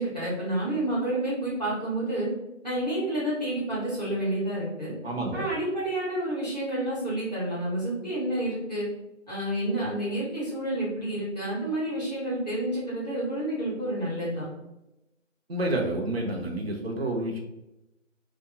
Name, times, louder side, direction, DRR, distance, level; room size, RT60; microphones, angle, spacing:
voice 1, 0.0-2.3 2.6-4.9 5.3-8.9 9.3-14.4, right 1 dB, 35° left, -9 dB, 1.4 m, -29 dB
voice 2, 5.0-5.5 15.5-17.4, right 1 dB, 55° right, 0 dB, 0.6 m, -29 dB
2.9 x 2.1 x 3.7 m, 0.92 s
figure-of-eight pair, 170°, 38 cm